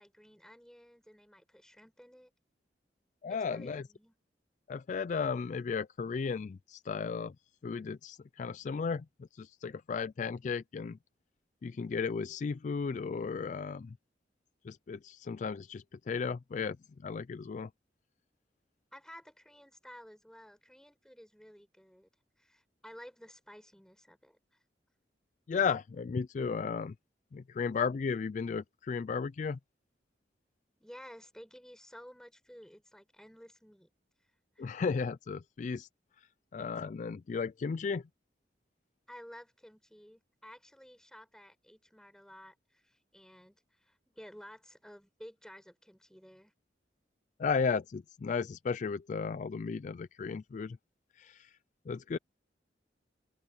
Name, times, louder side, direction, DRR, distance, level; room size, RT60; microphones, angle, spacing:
voice 1, 0.0-2.3 3.3-4.1 18.9-22.1 22.4-24.4 30.8-33.9 34.6-34.8 39.1-46.5, equal, 5° left, 4.7 m, -53 dB
voice 2, 3.2-3.8 4.7-7.3 7.6-11.0 11.6-14.0 14.6-16.8 17.0-17.7 25.5-26.9 27.3-29.6 34.6-35.9 36.2-36.3 36.5-38.1 47.4-50.8 51.2-51.5 51.9-52.2, left 5 dB, 45° left, 0.3 m, -34 dB
open air
head